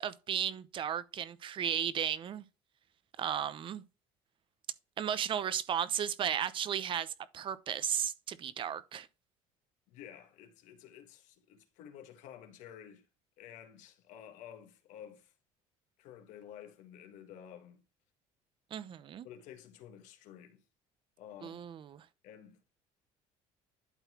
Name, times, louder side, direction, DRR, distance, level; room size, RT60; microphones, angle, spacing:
voice 1, 0.0-2.4 3.2-3.8 5.0-9.1 18.7-19.3 21.4-22.0, right 9 dB, 40° right, 0.8 m, -35 dB
voice 2, 9.9-13.1 13.4-15.3 16.0-17.8 19.2-20.6 21.2-21.7 22.2-22.7, left 9 dB, 75° left, 1.5 m, -52 dB
11.5 x 4.0 x 3.0 m
cardioid pair, 125°, 13 cm